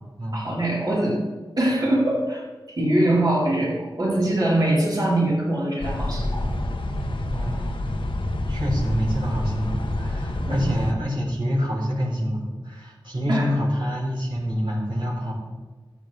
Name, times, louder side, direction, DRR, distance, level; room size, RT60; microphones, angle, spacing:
voice 1, 0.3-1.2 1.6-2.4 2.8-6.5 10.4-10.7 13.3-13.5, right 1 dB, 50° right, -6 dB, 4.1 m, -23 dB
sound 1, 5.8-10.9, left 1 dB, 80° left, 1.1 m, -27 dB
voice 2, 7.3-7.8 8.5-15.3, equal, 70° right, -6 dB, 3.8 m, -26 dB
14.0 x 9.0 x 3.5 m, 1.3 s
wide cardioid pair, 65°, 9 cm